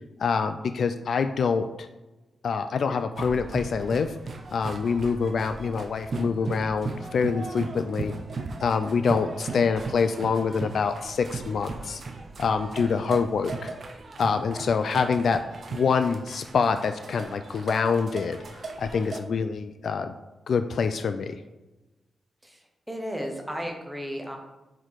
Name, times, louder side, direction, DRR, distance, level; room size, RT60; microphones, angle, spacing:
voice 1, 0.2-1.9 2.4-4.1 4.5-8.1 8.6-12.0 12.4-13.7 14.2-15.4 15.7-18.4 18.8-20.1 20.5-21.3, left 5 dB, 50° left, 9 dB, 0.3 m, -25 dB
sound 1, 3.2-19.2, right 3 dB, 40° right, 0.5 m, -37 dB
voice 2, 22.4-24.4, equal, 5° right, 2 dB, 0.9 m, -35 dB
6.4 x 4.2 x 4.6 m, 1.1 s
wide cardioid pair, 180°, 0 cm